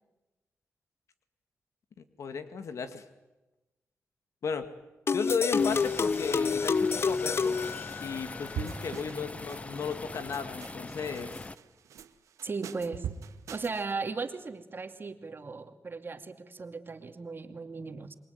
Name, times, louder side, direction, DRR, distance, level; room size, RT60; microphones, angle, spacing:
voice 1, 2.0-3.0 4.4-4.7 5.1-7.6 8.0-11.3, left 5 dB, 75° left, 10 dB, 2.3 m, -34 dB
sound 1, 5.1-8.5, left 5 dB, 55° left, 0.9 m, -28 dB
sound 2, 5.5-11.6, left 2 dB, 25° left, 1.1 m, -42 dB
sound 3, 8.5-9.2 9.5-10.0 10.3-11.3 11.6-12.1 12.4-13.8, right 9 dB, 90° right, 1.3 m, -40 dB
voice 2, 12.4-13.0 13.5-18.1, right 4 dB, 45° right, 8 dB, 2.5 m, -37 dB
27.0 x 23.5 x 9.5 m, 1.1 s
cardioid pair, 60°, 5 cm